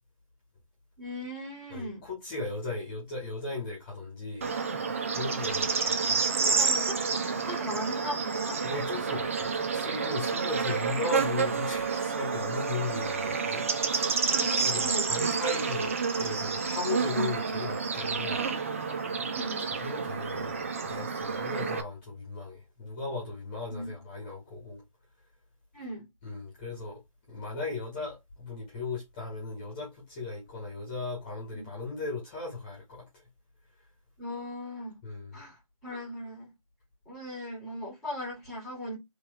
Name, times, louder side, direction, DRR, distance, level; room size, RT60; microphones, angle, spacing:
voice 1, 1.0-2.0 5.8-8.6 14.3-15.1 19.3-19.7 23.7-23.9 25.7-26.1 31.5-31.7 34.2-35.0 35.3-36.5 37.1-39.0, left 1 dB, ahead, 1.9 m, -39 dB
voice 2, 1.7-4.5 5.1-6.5 8.6-13.6 14.6-18.4 19.6-24.8 26.2-27.0 27.3-33.0 35.0-35.4, left 3 dB, 20° left, 1.5 m, -37 dB
Bird / Insect, 4.4-21.8, right 5 dB, 25° right, 0.4 m, -29 dB
4.4 x 3.2 x 3.2 m
figure-of-eight pair, 150°, 18 cm